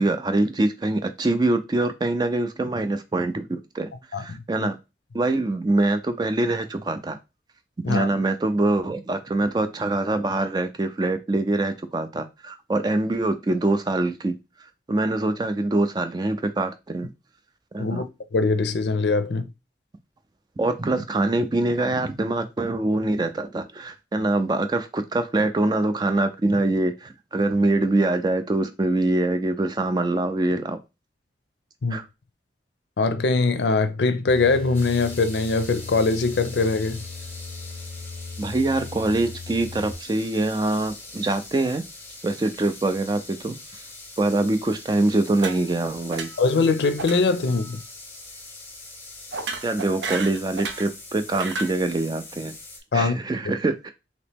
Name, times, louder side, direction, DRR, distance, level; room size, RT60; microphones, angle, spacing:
voice 1, 0.0-3.9 4.2-4.8 5.1-7.2 7.9-14.3 14.9-17.1 17.7-18.0 20.6-30.8 31.9-32.0 38.4-41.8 42.2-43.8 44.2-46.3 49.6-52.5 52.9-53.9, right 2 dB, 25° right, 0.3 m, -24 dB
voice 2, 4.1-4.7 7.8-8.1 17.8-19.5 31.8-32.0 33.0-37.0 46.4-47.8 52.9-53.2, left 3 dB, 75° left, 0.5 m, -22 dB
sound 1, 34.3-39.9, left 4 dB, 50° right, 0.8 m, -39 dB
sound 2, 34.7-52.8, left 2 dB, 10° left, 0.7 m, -43 dB
sound 3, 45.4-45.8 46.1-46.5 47.0-47.2 47.5-47.8 49.3-50.9 51.3-51.8, right 4 dB, 90° right, 0.6 m, -33 dB
2.9 x 2.9 x 3.4 m
head